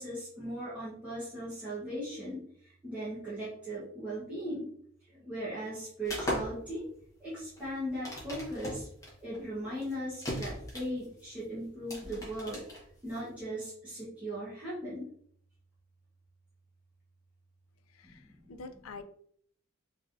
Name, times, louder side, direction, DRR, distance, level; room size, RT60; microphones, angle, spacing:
voice 1, 0.0-4.7 5.0-6.8 7.2-8.9 9.2-12.6 13.0-15.1 18.0-18.4, equal, 5° right, -11 dB, 1.3 m, -38 dB
sound 1, 6.0-13.4, equal, 15° left, 1.2 m, -39 dB
voice 2, 17.9-19.0, left 4 dB, 90° left, 9 dB, 0.4 m, -47 dB
3.9 x 3.4 x 2.6 m, 0.63 s
head